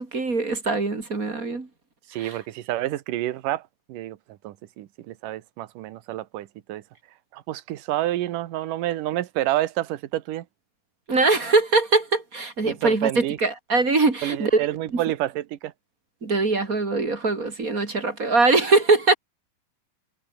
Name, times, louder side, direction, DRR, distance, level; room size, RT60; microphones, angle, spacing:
voice 1, 0.0-1.7 2.2-2.4 11.1-14.7 14.9-15.0 16.2-19.1, right 3 dB, 25° right, 2.9 m, -22 dB
voice 2, 2.1-3.6 3.9-4.2 4.4-6.8 7.3-10.4 12.6-13.4 14.2-15.7, right 14 dB, 75° right, 2.7 m, -28 dB
omnidirectional pair, 4.0 m